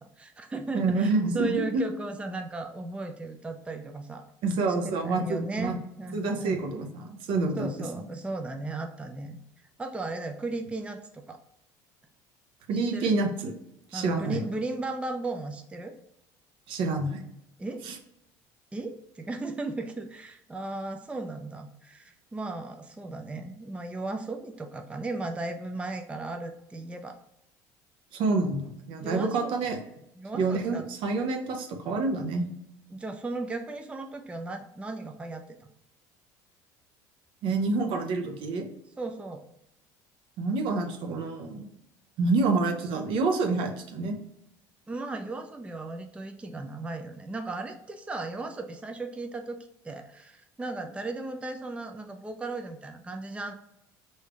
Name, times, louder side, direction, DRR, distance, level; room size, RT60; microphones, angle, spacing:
voice 1, 0.0-4.2 4.8-5.7 6.0-6.6 7.6-9.4 9.8-11.4 12.7-13.1 13.9-15.9 17.6-17.8 18.7-27.2 29.0-29.5 30.2-30.9 32.9-35.4 39.0-39.4 44.9-53.5, right 2 dB, 10° right, 6 dB, 0.4 m, -36 dB
voice 2, 0.7-1.8 4.4-5.8 6.1-7.7 7.9-8.0 12.7-13.5 13.9-14.4 16.7-17.3 17.9-18.0 28.1-29.8 30.3-32.5 37.4-38.7 40.4-41.7 42.2-44.2, right 3 dB, 65° right, 5 dB, 0.7 m, -27 dB
3.3 x 2.7 x 3.4 m, 0.81 s
supercardioid pair, 85°, 10 cm